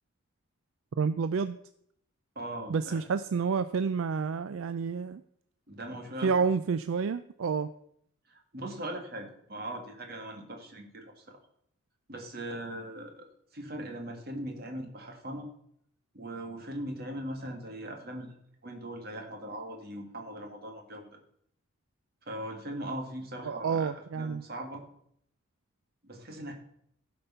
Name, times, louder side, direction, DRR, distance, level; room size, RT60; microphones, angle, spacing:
voice 1, 1.0-1.6 2.7-5.2 6.2-7.7 23.5-24.4, right 5 dB, 70° right, 12 dB, 0.4 m, -29 dB
voice 2, 2.4-3.0 5.7-6.4 8.3-11.4 12.1-13.3 13.5-15.5 16.1-18.3 18.6-21.2 22.3-24.8 26.0-26.5, right 1 dB, 45° right, 3 dB, 1.9 m, -40 dB
16.0 x 5.3 x 5.6 m, 0.71 s
head